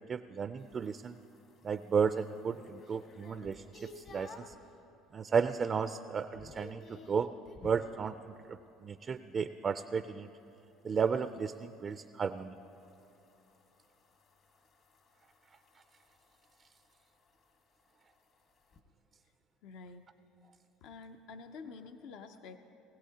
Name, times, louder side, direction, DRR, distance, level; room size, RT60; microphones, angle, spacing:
voice 1, 0.1-1.2 1.6-3.6 4.0-4.5 5.1-7.3 7.6-10.3 10.8-12.6, right 6 dB, 35° right, 10 dB, 0.3 m, -33 dB
sound 1, 0.6-4.6 5.1-5.5 5.8-7.9 10.4-18.8, left 2 dB, 55° left, 1.5 m, -56 dB
voice 2, 19.6-20.1 20.8-22.6, left 4 dB, 70° left, 7 dB, 0.6 m, -48 dB
20.0 x 16.5 x 2.8 m, 2.8 s
supercardioid pair, 100°, 0 cm